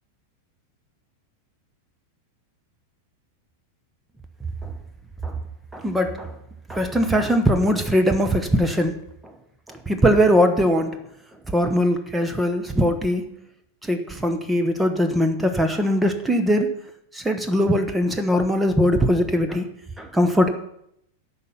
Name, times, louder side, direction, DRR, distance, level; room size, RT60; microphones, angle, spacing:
voice 1, 5.7-6.3 6.7-9.0 9.2-9.4 9.7-11.0 11.5-13.3 13.8-16.7 17.1-19.7 20.0-20.5, equal, 10° right, 7 dB, 1.0 m, -21 dB
10.5 x 5.6 x 7.2 m, 0.75 s
figure-of-eight pair, 95°, 0 cm